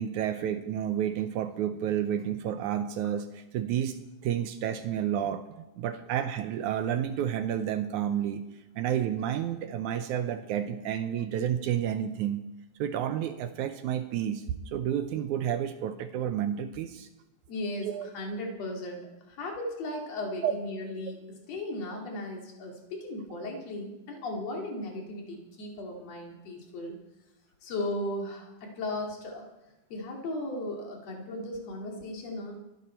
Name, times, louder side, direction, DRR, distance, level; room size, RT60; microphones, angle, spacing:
voice 1, 0.0-4.0 4.2-8.4 8.8-12.4 12.8-17.1 17.8-18.1 20.4-20.5, right 10 dB, 75° right, 10 dB, 1.9 m, -30 dB
voice 2, 17.5-27.0 27.6-29.5 29.9-32.6, left 1 dB, 50° left, 1 dB, 3.4 m, -36 dB
24.5 x 11.0 x 4.4 m, 1.0 s
omnidirectional pair, 4.0 m